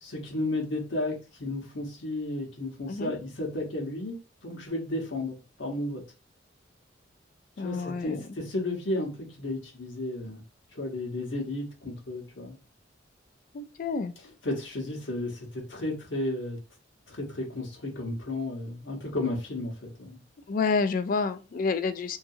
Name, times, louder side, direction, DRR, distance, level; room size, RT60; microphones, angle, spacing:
voice 1, 0.0-6.0 7.6-10.4 10.7-12.6 14.4-16.6 17.1-20.2, left 2 dB, 85° left, 1.0 m, -33 dB
voice 2, 7.6-8.2 13.5-14.1 20.5-22.2, left 4 dB, 45° left, 0.3 m, -29 dB
2.7 x 2.6 x 2.4 m
head